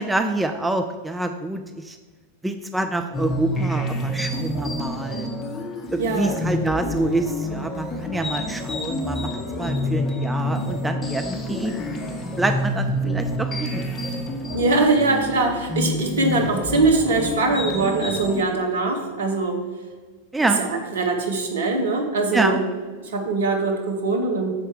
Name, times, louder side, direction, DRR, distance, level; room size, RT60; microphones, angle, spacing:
voice 1, 0.0-2.0 2.4-5.3 5.9-11.7 12.4-14.0 20.3-20.6 22.3-22.6, right 2 dB, 10° right, 7 dB, 0.3 m, -26 dB
sound 1, 3.1-18.4, left 1 dB, 20° left, 1.0 m, -28 dB
voice 2, 6.0-6.3 14.5-19.6 20.6-22.6 23.0-24.5, right 3 dB, 60° right, 3 dB, 1.0 m, -22 dB
6.2 x 4.5 x 4.6 m, 1.4 s
figure-of-eight pair, 90°, 0 cm